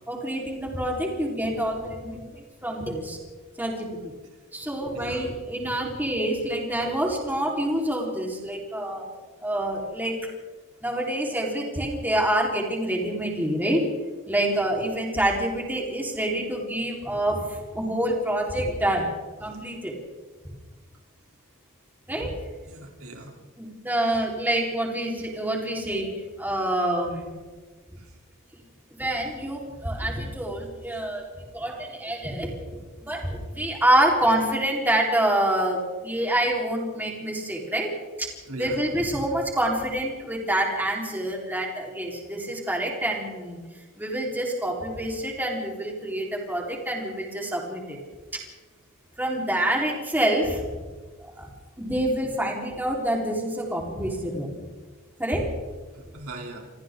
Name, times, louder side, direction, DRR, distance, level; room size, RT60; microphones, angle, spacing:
voice 1, 0.1-3.2 3.6-4.2 4.5-9.1 9.4-10.2 10.8-13.8 14.3-19.1 19.4-19.9 22.1-22.3 23.6-26.1 26.4-27.3 29.0-31.3 31.5-37.9 38.2-38.3 38.6-43.6 44.0-48.0 49.2-50.7 51.2-51.5 51.8-54.6 55.2-55.5, right 1 dB, 10° right, -2 dB, 4.4 m, -27 dB
voice 2, 4.9-5.3 22.7-23.3 30.0-30.1 38.5-38.8 55.9-56.7, right 2 dB, 80° right, 0 dB, 3.7 m, -39 dB
29.0 x 25.5 x 3.9 m, 1.3 s
head